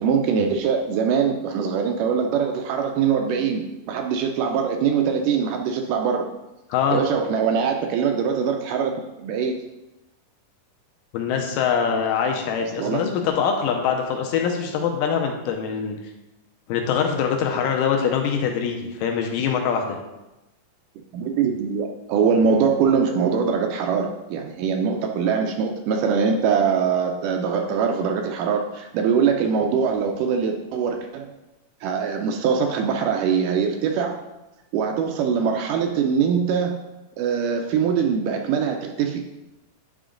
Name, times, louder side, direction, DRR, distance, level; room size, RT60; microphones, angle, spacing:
voice 1, 0.0-6.3 6.9-8.9 9.2-9.6 12.8-13.1 21.1-31.4 31.8-34.2 34.7-36.8 37.2-39.2, right 6 dB, 80° right, 3 dB, 2.0 m, -22 dB
voice 2, 6.7-7.0 11.1-16.0 16.7-20.0, left 7 dB, 80° left, 3 dB, 2.2 m, -23 dB
10.0 x 3.7 x 3.7 m, 0.99 s
omnidirectional pair, 4.0 m